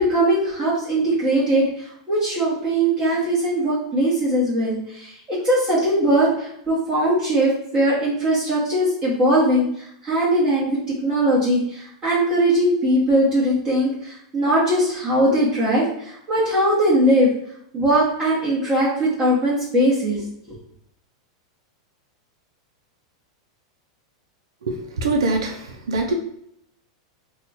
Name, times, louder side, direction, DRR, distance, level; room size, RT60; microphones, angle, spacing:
voice 1, 0.0-17.3 17.7-20.2, right 1 dB, 25° right, -8 dB, 1.1 m, -20 dB
voice 2, 24.6-26.1, right 2 dB, 90° right, 2 dB, 0.5 m, -24 dB
2.8 x 2.3 x 4.1 m, 0.73 s
supercardioid pair, 130°, 3 cm